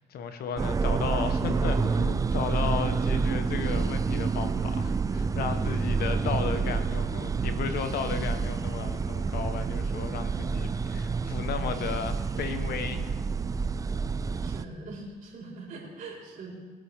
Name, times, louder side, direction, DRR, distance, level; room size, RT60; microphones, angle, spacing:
voice 1, 0.0-13.1, left 6 dB, 65° left, 8 dB, 1.2 m, -34 dB
sound 1, 0.6-14.7, right 4 dB, 20° right, 0.4 m, -28 dB
voice 2, 5.7-6.3 14.4-16.5, right 2 dB, 50° right, -4 dB, 4.4 m, -42 dB
21.0 x 9.2 x 3.6 m, 1.5 s
cardioid pair, 110°, 17 cm